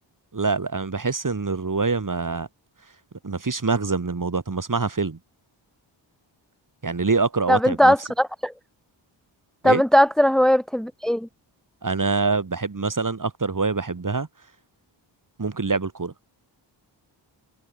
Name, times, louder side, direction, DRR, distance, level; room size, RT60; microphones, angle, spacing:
voice 1, 0.3-2.5 3.2-5.2 6.8-7.9 9.6-9.8 11.8-14.3 15.4-16.1, right 4 dB, 40° right, 7.3 m, -25 dB
voice 2, 7.5-8.5 9.6-11.3, equal, ahead, 1.4 m, -19 dB
cardioid pair, 60°, 47 cm